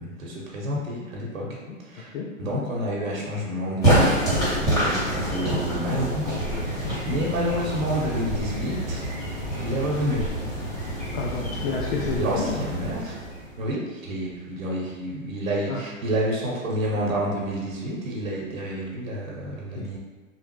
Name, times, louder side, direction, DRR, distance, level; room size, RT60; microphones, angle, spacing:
voice 1, 0.0-1.4 1.8-2.1 2.4-6.4 6.6-9.1 9.6-10.2 11.5-11.7 12.2-13.2 13.6-20.0, equal, 75° right, -3 dB, 0.9 m, -29 dB
voice 2, 0.7-1.1 1.5-2.6 6.8-7.2 11.1-12.6 15.7-15.8 19.5-19.9, left 4 dB, 55° left, -1 dB, 0.5 m, -32 dB
sound 1, 3.8-13.6, right 1 dB, 10° left, 1.4 m, -26 dB
2.8 x 2.0 x 3.0 m, 1.4 s
hypercardioid pair, 115°, 40 cm